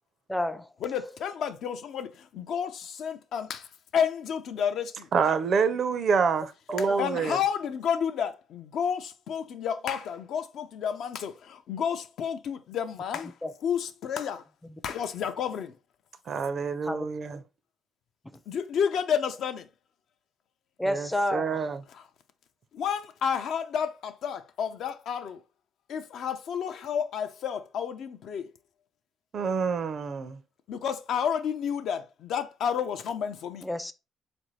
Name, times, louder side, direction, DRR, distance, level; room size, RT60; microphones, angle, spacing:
voice 1, 0.3-0.7 6.7-7.0 13.4-13.5 16.8-17.1 18.3-18.4 20.8-21.7 33.6-33.9, equal, 10° left, 0.4 m, -30 dB
voice 2, 0.8-5.1 6.8-13.4 13.6-14.4 14.8-15.8 18.5-19.7 21.9-22.1 22.7-25.4 25.9-28.5 30.7-33.7, left 7 dB, 75° left, 0.4 m, -31 dB
voice 3, 5.1-7.4 16.3-17.4 20.9-21.8 29.3-30.4, right 5 dB, 55° right, 0.4 m, -27 dB
3.9 x 2.6 x 3.1 m
cardioid pair, 90°, 0 cm